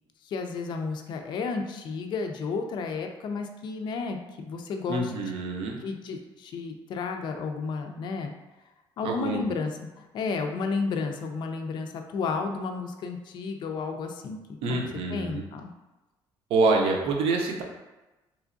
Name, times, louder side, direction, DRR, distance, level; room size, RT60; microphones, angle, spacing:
voice 1, 0.2-4.2 4.4-5.1 5.8-8.3 9.0-14.8 15.1-15.7, left 4 dB, 50° left, 4 dB, 0.4 m, -32 dB
voice 2, 4.9-5.8 9.0-9.4 14.6-15.4 16.5-17.6, right 3 dB, 75° right, 1 dB, 0.6 m, -26 dB
3.5 x 3.0 x 2.5 m, 1.1 s
cardioid pair, 145°, 10 cm